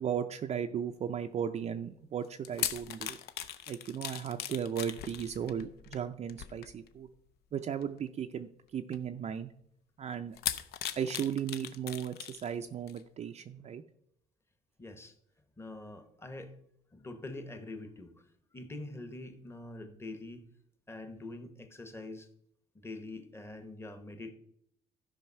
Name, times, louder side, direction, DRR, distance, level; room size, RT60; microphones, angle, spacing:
voice 1, 0.0-3.2 3.7-7.1 7.5-9.5 10.0-10.4 11.0-13.8, right 8 dB, 40° right, 6 dB, 0.5 m, -36 dB
sound 1, 2.2-7.1 7.8-8.0 8.9-9.0 10.3-12.5 12.9-13.0, left 10 dB, 75° left, 0.7 m, -39 dB
voice 2, 14.8-15.1 15.6-16.6 16.9-18.2 18.5-20.4 20.9-22.3 22.7-24.3, left 2 dB, 15° left, 8 dB, 1.3 m, -44 dB
12.5 x 5.4 x 5.6 m, 0.71 s
cardioid pair, 110°, 17 cm